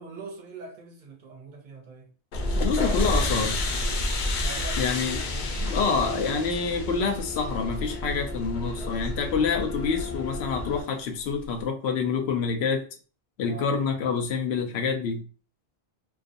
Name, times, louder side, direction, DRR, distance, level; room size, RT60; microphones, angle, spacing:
voice 1, 0.0-2.1 4.4-4.9 13.5-13.8, right 3 dB, 60° right, 0.6 m, -42 dB
sound 1, 2.3-10.8, left 1 dB, 60° left, 0.6 m, -30 dB
voice 2, 2.5-3.6 4.8-5.2 5.7-12.9 13.4-15.2, left 5 dB, 85° left, 0.8 m, -27 dB
sound 2, 3.0-11.6, equal, 25° left, 0.9 m, -40 dB
2.5 x 2.3 x 2.5 m
omnidirectional pair, 1.0 m